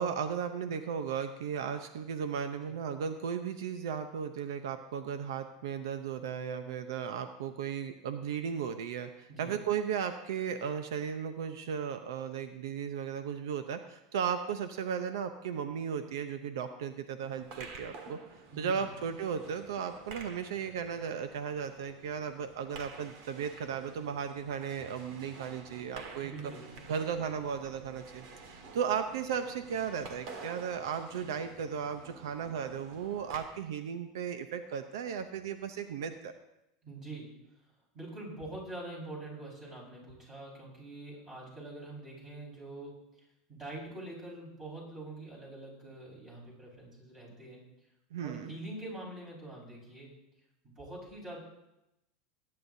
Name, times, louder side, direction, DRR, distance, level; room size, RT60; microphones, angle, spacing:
voice 1, 0.0-18.2 18.6-26.3 26.9-36.3 48.1-48.5, right 7 dB, 85° right, 8 dB, 0.7 m, -35 dB
sound 1, 17.2-33.4, right 4 dB, 60° right, 1.8 m, -50 dB
voice 2, 18.5-18.9 26.2-26.9 36.8-37.3 37.9-43.0 43.5-47.6 48.2-50.1 50.6-51.4, right 2 dB, 25° right, -3 dB, 5.3 m, -44 dB
21.0 x 9.7 x 2.7 m, 0.88 s
supercardioid pair, 135°, 2 cm